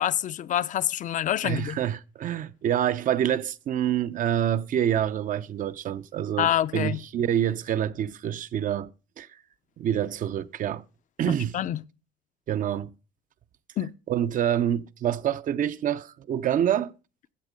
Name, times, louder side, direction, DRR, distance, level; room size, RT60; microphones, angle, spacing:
voice 1, 0.0-1.8 6.4-7.0 11.5-11.8 13.8-13.9, left 11 dB, 50° left, 0.6 m, -26 dB
voice 2, 1.4-8.9 9.2-9.3 9.8-10.8 11.2-11.6 12.5-12.9 14.1-16.9, right 10 dB, 50° right, 0.6 m, -27 dB
14.5 x 8.0 x 5.1 m
cardioid pair, 110°, 17 cm